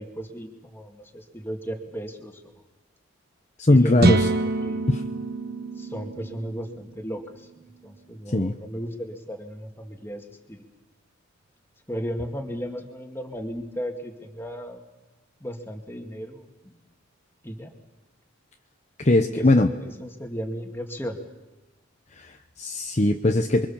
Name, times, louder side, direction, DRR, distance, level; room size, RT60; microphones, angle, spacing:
voice 1, 0.0-2.5 3.7-4.2 4.6-4.8 5.8-7.5 7.8-10.6 11.9-14.8 15.4-16.8 17.4-17.7 19.3-21.2, equal, 10° left, 3 dB, 2.4 m, -35 dB
voice 2, 3.6-4.3 4.9-5.0 8.3-8.5 19.0-19.7 22.2-23.7, left 2 dB, 35° left, 5 dB, 0.9 m, -20 dB
sound 1, 4.0-7.8, right 2 dB, 45° right, 1.1 m, -26 dB
28.0 x 24.0 x 7.3 m, 1.1 s
head